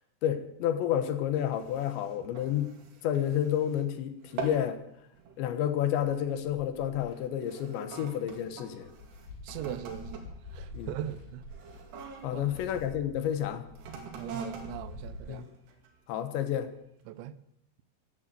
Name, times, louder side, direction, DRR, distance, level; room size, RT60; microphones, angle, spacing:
voice 1, 0.2-2.7 3.0-4.8 5.4-8.9 10.7-10.9 12.2-13.6 15.3-15.4 16.1-16.7, left 10 dB, 75° left, 3.3 m, -30 dB
sound 1, 1.3-3.9 4.2-4.8 5.1-5.4 6.1-6.4 7.1-12.9 13.7-16.0 16.6-16.7, right 5 dB, 65° right, 4.3 m, -44 dB
sound 2, 6.7-7.2 7.9-8.0 8.3-15.2, left 2 dB, 40° left, 7.0 m, -47 dB
voice 2, 9.4-11.4 12.3-12.7 13.2-13.3 14.2-15.5 17.1-17.4, right 11 dB, 80° right, 3.0 m, -40 dB
15.5 x 12.0 x 7.9 m
omnidirectional pair, 5.4 m